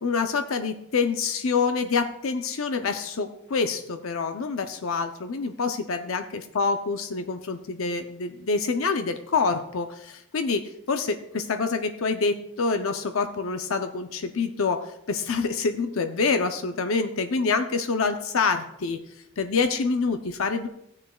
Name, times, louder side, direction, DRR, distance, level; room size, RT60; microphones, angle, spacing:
voice 1, 0.0-6.2 6.5-10.6 10.9-19.0 19.4-20.7, left 4 dB, 80° left, 7 dB, 0.6 m, -26 dB
15.5 x 9.6 x 2.3 m, 0.80 s
head